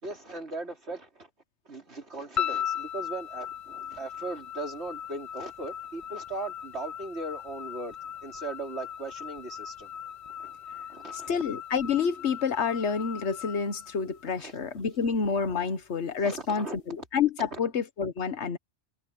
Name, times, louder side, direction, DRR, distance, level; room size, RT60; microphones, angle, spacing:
voice 1, 0.0-1.3 1.7-8.0 8.2-9.9 10.4-10.5 10.9-11.3 14.4-14.6 16.2-16.8 17.5-17.6, right 2 dB, 70° right, 4.2 m, -38 dB
sound 1, 2.4-14.7, left 9 dB, 55° left, 0.4 m, -38 dB
voice 2, 11.3-18.6, left 6 dB, 75° left, 1.5 m, -28 dB
omnidirectional pair, 1.2 m